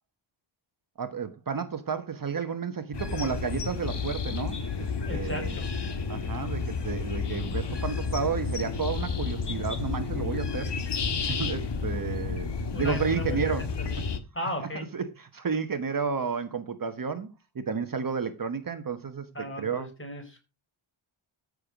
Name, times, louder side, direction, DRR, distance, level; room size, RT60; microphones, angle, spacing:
voice 1, 1.0-5.6 6.1-10.7 11.3-13.6 14.6-19.9, right 6 dB, 45° right, 1.3 m, -32 dB
sound 1, 2.9-14.2, left 4 dB, 55° left, 1.7 m, -31 dB
voice 2, 5.0-5.7 12.7-13.6 13.9-14.0 14.3-14.9 19.3-20.4, left 1 dB, 25° left, 4.6 m, -36 dB
14.5 x 6.5 x 5.2 m
wide cardioid pair, 150°, 49 cm